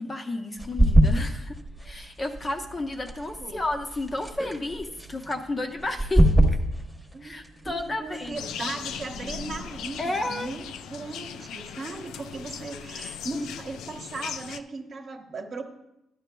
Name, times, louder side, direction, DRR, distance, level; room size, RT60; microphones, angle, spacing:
voice 1, 0.0-6.2 7.2-8.4 10.0-10.5 13.3-13.4, left 2 dB, 20° left, 4 dB, 0.7 m, -32 dB
sound 1, 0.6-10.9, right 1 dB, 5° left, 1.0 m, -27 dB
voice 2, 7.6-15.6, right 3 dB, 40° right, 3 dB, 1.0 m, -37 dB
sound 2, 8.3-14.6, left 8 dB, 80° left, 0.4 m, -38 dB
13.0 x 10.0 x 2.3 m, 0.87 s
cardioid pair, 150°, 0 cm